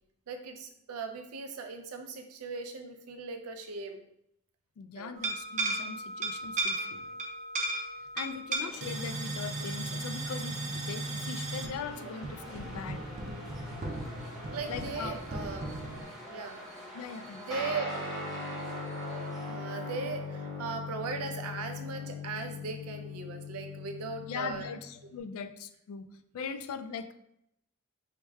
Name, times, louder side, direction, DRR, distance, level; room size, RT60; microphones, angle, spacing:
voice 1, 0.3-4.0 5.0-5.1 12.0-12.1 14.4-15.6 16.3-16.7 17.4-17.9 18.5-18.6 19.4-24.7, right 4 dB, 85° right, 5 dB, 0.5 m, -38 dB
voice 2, 4.8-7.1 8.1-13.0 14.7-15.2 16.9-17.5 24.3-26.1 26.3-27.1, left 6 dB, 75° left, 10 dB, 0.3 m, -40 dB
sound 1, 5.1-16.0, right 2 dB, 35° right, 0.5 m, -36 dB
sound 2, 8.6-20.9, equal, ahead, 0.8 m, -47 dB
Guitar, 17.5-25.2, left 3 dB, 20° left, 1.1 m, -39 dB
4.6 x 2.1 x 3.4 m, 0.78 s
head